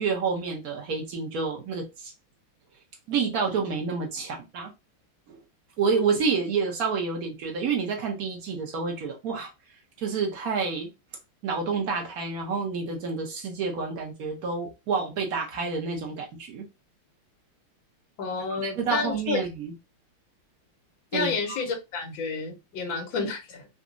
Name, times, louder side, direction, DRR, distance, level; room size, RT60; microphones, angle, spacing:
voice 1, 0.0-2.1 3.1-4.7 5.3-5.4 5.8-9.5 10.0-10.9 11.4-16.7 18.6-19.7 21.1-21.6, right 5 dB, 55° right, 1.1 m, -29 dB
voice 2, 18.2-19.4 21.1-23.7, left 4 dB, 65° left, 1.7 m, -30 dB
4.0 x 2.4 x 2.5 m
omnidirectional pair, 2.4 m